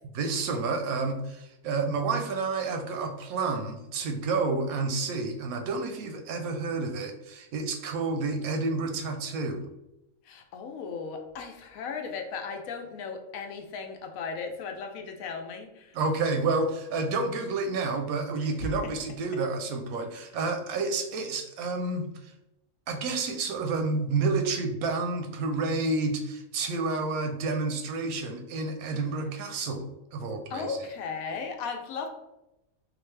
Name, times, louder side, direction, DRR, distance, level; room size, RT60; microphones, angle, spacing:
voice 1, 0.1-9.7 15.9-22.1 22.9-30.8, right 3 dB, 90° right, 5 dB, 1.1 m, -30 dB
voice 2, 10.2-16.0 18.4-18.7 28.9-29.3 30.5-32.1, left 5 dB, 80° left, 4 dB, 1.0 m, -36 dB
3.9 x 2.6 x 3.2 m, 0.90 s
omnidirectional pair, 1.5 m